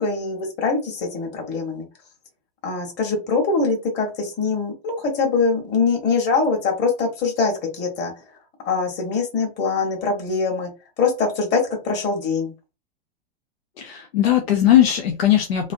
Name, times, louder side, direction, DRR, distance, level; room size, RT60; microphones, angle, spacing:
voice 1, 0.0-1.9 2.6-8.2 8.6-10.7 11.0-12.5, left 4 dB, 35° left, 2 dB, 1.4 m, -23 dB
voice 2, 13.8-15.7, left 11 dB, 85° left, 4 dB, 0.7 m, -18 dB
3.1 x 2.6 x 2.6 m, 0.29 s
hypercardioid pair, 105°, 30 cm